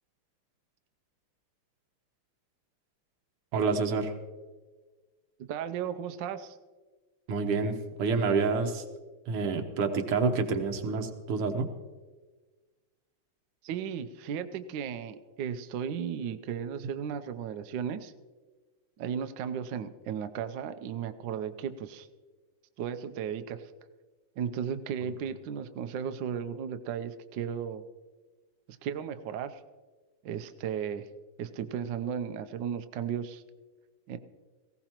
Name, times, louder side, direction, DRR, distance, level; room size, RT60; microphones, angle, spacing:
voice 1, 3.5-4.1 7.3-8.8 9.3-11.7, right 4 dB, 85° right, 6 dB, 2.0 m, -28 dB
voice 2, 5.4-6.6 13.6-18.1 19.0-22.1 22.8-23.7 24.4-27.9 28.7-29.6 30.2-31.1 31.4-33.4 34.1-34.2, right 8 dB, 70° right, 9 dB, 1.2 m, -35 dB
19.0 x 16.5 x 2.9 m, 1.3 s
omnidirectional pair, 2.4 m